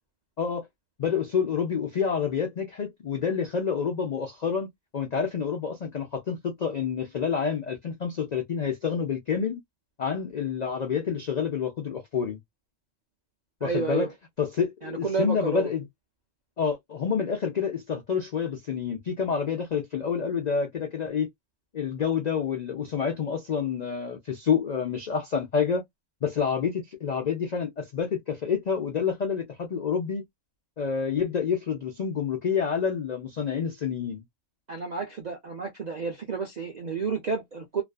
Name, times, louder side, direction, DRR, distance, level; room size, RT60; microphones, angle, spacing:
voice 1, 1.0-4.7 4.9-9.6 10.0-12.4 13.6-14.1 14.4-15.9 16.6-21.3 21.7-25.8 26.2-30.2 30.8-34.2, left 6 dB, 65° left, 0.4 m, -28 dB
voice 2, 13.6-14.1 14.8-15.7 34.7-37.8, right 5 dB, 65° right, 0.4 m, -31 dB
2.4 x 2.3 x 2.3 m
omnidirectional pair, 1.4 m